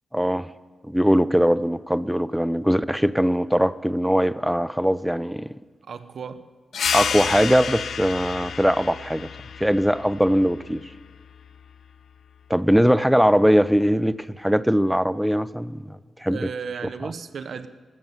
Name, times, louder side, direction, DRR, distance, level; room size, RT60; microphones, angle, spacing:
voice 1, 0.1-0.5 0.8-5.5 6.9-9.3 9.6-10.8 12.5-16.4, equal, ahead, 16 dB, 0.4 m, -21 dB
voice 2, 5.8-6.5 16.3-17.7, right 6 dB, 65° right, 11 dB, 0.6 m, -34 dB
sound 1, 6.7-11.9, left 7 dB, 70° left, 0.3 m, -31 dB
15.0 x 13.5 x 5.5 m, 1.5 s
wide cardioid pair, 135°, 0 cm